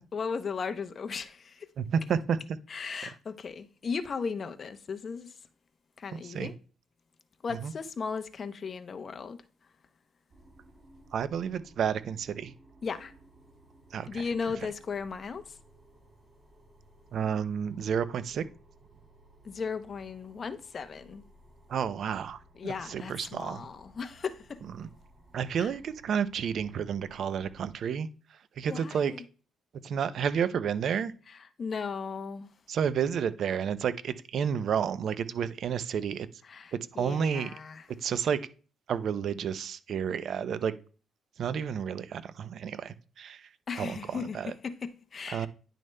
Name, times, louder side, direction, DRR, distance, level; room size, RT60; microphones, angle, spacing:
voice 1, 0.1-1.7 2.7-5.3 6.0-6.5 7.4-9.4 12.8-13.1 14.1-15.5 19.4-21.2 22.6-24.6 25.6-25.7 28.7-29.2 31.6-32.5 36.5-37.8 43.7-44.4 44.6-45.5, left 5 dB, 45° left, 0.7 m, -36 dB
voice 2, 1.8-2.6 3.0-3.1 6.1-6.5 7.6-7.7 11.1-12.5 13.9-14.3 17.1-18.4 21.7-23.7 24.8-24.9 25.3-28.1 28.6-29.1 29.8-31.1 32.7-36.3 36.7-37.5 38.0-38.4 38.9-40.7 41.4-43.5 43.8-44.5 45.3-45.5, right 7 dB, 65° right, 0.5 m, -31 dB
sound 1, 10.3-27.7, right 1 dB, 35° right, 2.9 m, -58 dB
10.0 x 6.3 x 2.2 m
cardioid pair, 90°, 0 cm